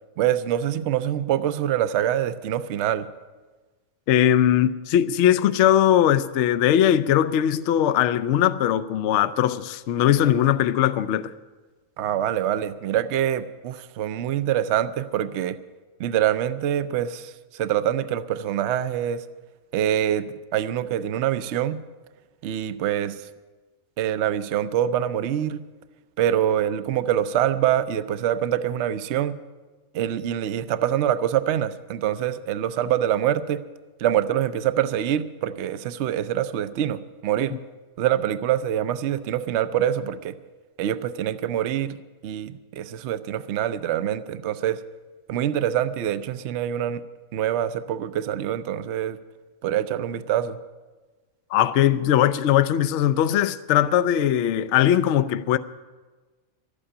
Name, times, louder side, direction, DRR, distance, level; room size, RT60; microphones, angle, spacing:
voice 1, 0.2-3.1 12.0-15.6 16.0-19.2 19.7-21.8 22.4-23.3 24.0-25.6 26.2-29.4 29.9-33.6 34.0-37.5 38.0-40.4 40.8-42.0 42.2-44.8 45.3-47.0 47.3-49.2 49.6-50.6, right 11 dB, 65° right, 0.9 m, -25 dB
voice 2, 4.1-11.3 51.5-55.6, left 11 dB, 65° left, 0.8 m, -20 dB
12.5 x 8.7 x 9.8 m
omnidirectional pair, 1.4 m